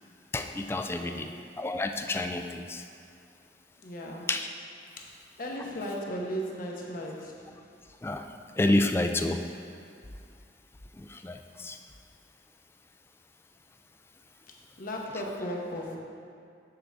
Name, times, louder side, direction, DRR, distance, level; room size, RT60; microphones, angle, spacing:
voice 1, 0.3-1.3 1.6-2.8 4.3-4.5 8.0-8.3 8.6-9.4 11.0-11.8, left 2 dB, 15° left, 6 dB, 0.3 m, -29 dB
voice 2, 1.0-1.4 3.8-4.3 5.4-7.5 14.8-16.0, equal, 50° left, -1 dB, 1.0 m, -36 dB
7.3 x 6.8 x 3.4 m, 2.4 s
head